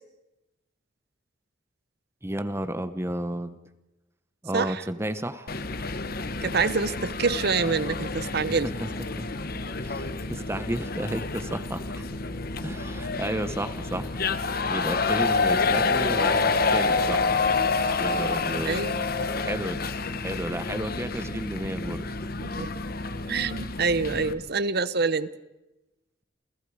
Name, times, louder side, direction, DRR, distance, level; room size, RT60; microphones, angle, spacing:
voice 1, 2.2-3.6 4.4-5.5 9.2-9.3 9.8-12.0 12.6-14.1 14.7-17.3 17.9-18.8 19.4-19.9 20.2-22.0, right 1 dB, 15° right, 11 dB, 1.0 m, -32 dB
voice 2, 4.5-4.8 6.4-8.7 18.7-19.0 22.4-22.7 23.3-25.3, right 4 dB, 55° right, 15 dB, 0.9 m, -26 dB
sound 1, 5.5-24.3, left 4 dB, 55° left, 1.4 m, -28 dB
29.5 x 28.0 x 4.9 m, 1.0 s
head